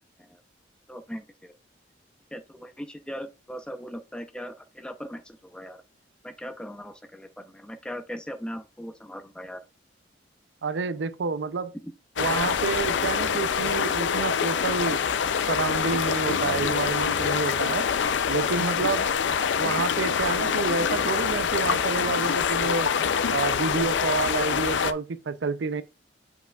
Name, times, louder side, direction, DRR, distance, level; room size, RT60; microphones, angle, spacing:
voice 1, 0.9-1.5 2.3-5.8 6.2-9.6 11.8-11.9, equal, 5° left, 0.6 m, -39 dB
voice 2, 10.6-11.7 12.2-15.0 15.5-17.9 18.3-19.1 19.6-22.9 23.3-25.8, right 4 dB, 70° right, 0.5 m, -29 dB
sound 1, 12.2-24.9, left 7 dB, 75° left, 0.5 m, -25 dB
7.4 x 5.6 x 2.3 m
head